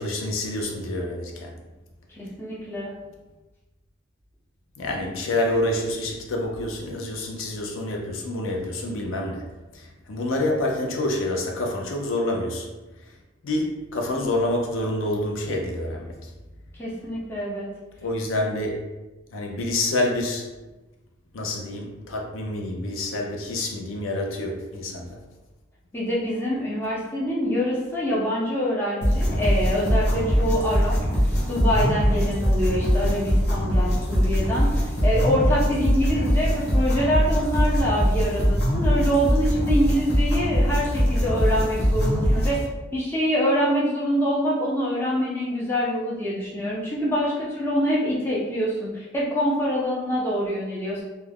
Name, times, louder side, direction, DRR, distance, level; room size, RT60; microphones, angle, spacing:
voice 1, 0.0-1.5 4.8-9.5 9.7-12.7 13.4-16.3 18.0-18.8 19.3-20.5 21.3-25.2, left 1 dB, 85° left, 0 dB, 0.5 m, -27 dB
voice 2, 2.1-2.9 16.7-17.7 25.9-31.0 31.5-34.7 35.0-42.6 42.9-51.0, equal, 10° left, -7 dB, 0.6 m, -25 dB
sound 1, 29.0-42.6, equal, 55° left, 0.7 m, -22 dB
2.3 x 2.2 x 3.3 m, 1.1 s
head